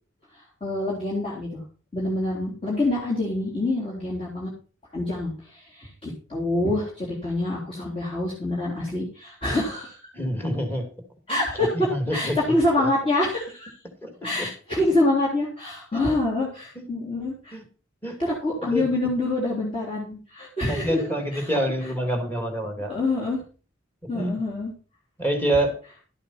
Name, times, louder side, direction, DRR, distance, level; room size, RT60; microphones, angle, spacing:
voice 1, 0.4-1.6 1.9-4.5 4.9-10.0 11.3-13.7 14.2-17.5 18.2-21.0 21.3-21.5 22.9-23.4 24.1-24.7, left 2 dB, 30° left, -6 dB, 3.6 m, -26 dB
voice 2, 10.1-10.9 11.3-11.4 11.7-12.9 14.0-14.5 15.9-16.2 16.8-16.9 17.5-17.6 18.0-18.2 18.7-18.9 20.7-22.9 24.1-24.4 25.2-25.8, right 1 dB, 10° left, 5 dB, 2.7 m, -27 dB
12.0 x 8.5 x 4.3 m, 0.37 s
head